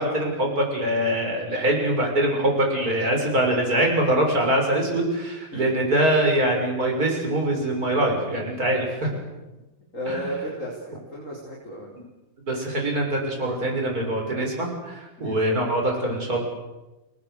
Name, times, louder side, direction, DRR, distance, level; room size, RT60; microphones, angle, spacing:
voice 1, 0.0-9.2 10.1-10.2 12.5-16.4, right 1 dB, 25° right, 1 dB, 7.1 m, -23 dB
voice 2, 9.9-11.9 15.2-15.7, equal, 20° left, -3 dB, 4.8 m, -34 dB
29.5 x 20.0 x 8.2 m, 1.1 s
omnidirectional pair, 4.0 m